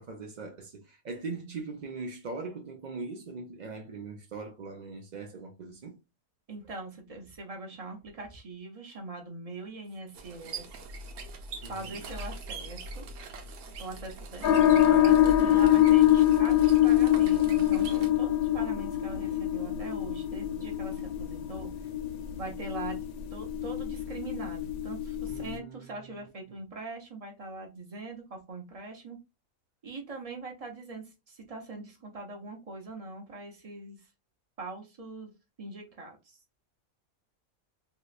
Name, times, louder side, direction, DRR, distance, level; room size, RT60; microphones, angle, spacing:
voice 1, 0.0-5.9 11.6-12.1 15.4-15.8 25.3-26.3, right 4 dB, 70° right, 0.4 m, -41 dB
voice 2, 6.5-10.8 11.7-13.1 13.8-21.7 22.3-23.0 23.3-29.2 29.8-34.0 34.6-35.3 35.6-36.4, right 3 dB, 30° right, 0.7 m, -42 dB
sound 1, 10.1-18.1, right 2 dB, 90° right, 1.2 m, -42 dB
sound 2, 14.4-25.6, left 12 dB, 85° left, 1.1 m, -24 dB
3.1 x 2.9 x 2.4 m
omnidirectional pair, 1.5 m